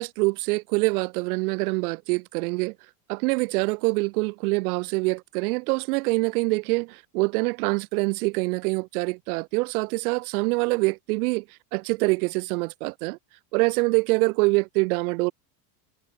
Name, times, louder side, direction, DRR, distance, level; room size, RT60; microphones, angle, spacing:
voice 1, 0.0-2.7 3.1-11.4 11.7-13.2 13.5-15.3, right 26 dB, 65° right, 1.1 m, -25 dB
supercardioid pair, 160°, 47 cm